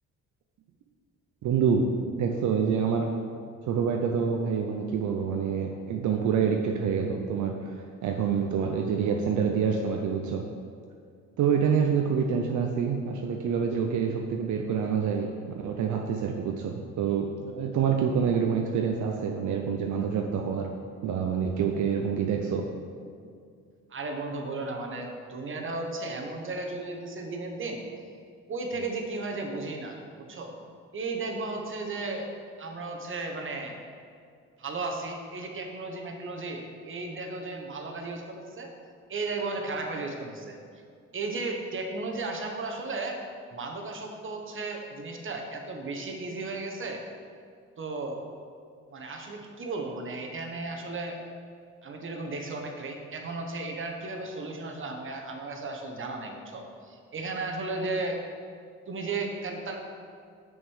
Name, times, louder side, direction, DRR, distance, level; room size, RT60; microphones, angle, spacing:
voice 1, 1.4-1.9 2.2-3.1 3.7-7.8 8.0-10.5 11.4-20.7 21.0-22.7, right 6 dB, 75° right, 2 dB, 0.7 m, -27 dB
voice 2, 23.9-27.8 28.5-30.5 30.9-32.3 32.6-33.8 34.6-38.7 39.1-40.6 41.1-43.2 43.5-47.0 47.8-48.2 48.9-51.2 51.8-58.2 58.9-59.8, right 3 dB, 40° right, 2 dB, 1.2 m, -35 dB
6.1 x 5.3 x 6.3 m, 2.2 s
cardioid pair, 90°, 30 cm